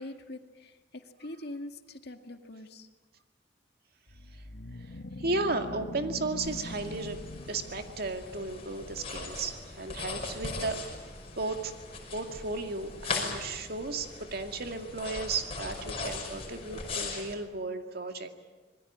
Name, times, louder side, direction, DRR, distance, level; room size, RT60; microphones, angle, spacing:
voice 1, 0.0-2.9, left 1 dB, 65° left, 6 dB, 2.0 m, -43 dB
sound 1, 4.1-8.5, left 2 dB, 80° left, 1.3 m, -43 dB
voice 2, 5.2-7.2 7.5-10.8 11.4-11.7 12.1-18.3, right 3 dB, 60° right, 6 dB, 2.2 m, -34 dB
sound 2, 6.4-17.3, left 3 dB, 35° left, 5.7 m, -39 dB
26.5 x 21.0 x 8.8 m, 1.2 s
head